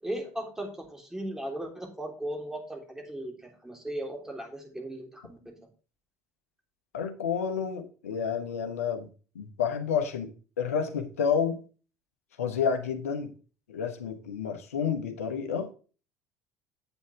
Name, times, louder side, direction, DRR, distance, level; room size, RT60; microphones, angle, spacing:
voice 1, 0.0-5.7, right 1 dB, 5° right, 2 dB, 3.5 m, -37 dB
voice 2, 6.9-9.1 9.3-11.6 12.4-13.3 13.7-15.7, left 7 dB, 80° left, 6 dB, 1.3 m, -30 dB
8.2 x 8.0 x 3.4 m, 0.37 s
figure-of-eight pair, 60°, 8 cm